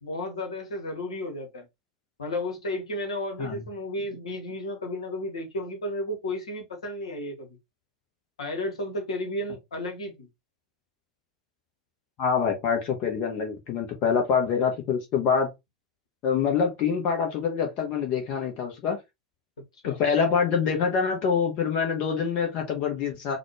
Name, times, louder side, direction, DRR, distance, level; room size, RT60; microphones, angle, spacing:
voice 1, 0.0-1.6 2.2-7.5 8.4-10.3 19.8-20.0, left 1 dB, 70° left, 1.2 m, -33 dB
voice 2, 12.2-15.5 16.2-19.0 19.8-23.4, left 6 dB, 40° left, 0.9 m, -25 dB
4.1 x 2.3 x 3.0 m
figure-of-eight pair, 85°, 3 cm